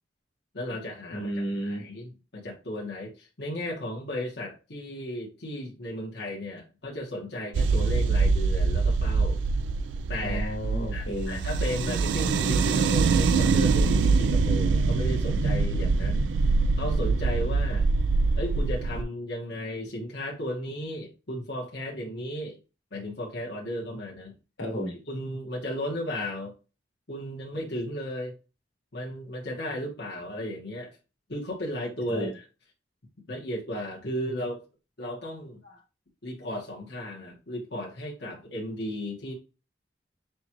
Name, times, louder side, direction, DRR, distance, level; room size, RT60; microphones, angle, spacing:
voice 1, 0.5-1.3 1.6-9.4 10.1-10.5 10.9-16.3 16.8-17.9 18.4-22.6 22.9-24.3 25.1-26.5 27.1-28.4 28.9-31.0 31.3-32.4 33.3-34.6 35.0-35.6 36.2-39.3, left 1 dB, 65° left, 1.4 m, -35 dB
voice 2, 1.1-1.8 10.2-11.5 24.6-24.9 32.1-32.3, equal, 85° left, 1.9 m, -32 dB
sound 1, 7.5-19.0, right 4 dB, 85° right, 0.3 m, -24 dB
6.1 x 2.4 x 3.0 m
head